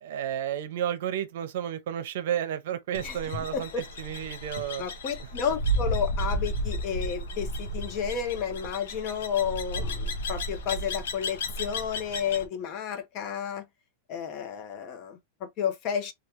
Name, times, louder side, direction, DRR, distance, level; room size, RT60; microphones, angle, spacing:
voice 1, 0.0-3.7 4.0-4.8, right 10 dB, 70° right, 0.7 m, -32 dB
sound 1, 2.9-12.5, equal, 85° left, 0.9 m, -33 dB
voice 2, 3.5-3.8 4.8-13.7 14.1-16.1, left 7 dB, 40° left, 0.8 m, -32 dB
3.3 x 2.3 x 2.9 m
supercardioid pair, 145°, 0 cm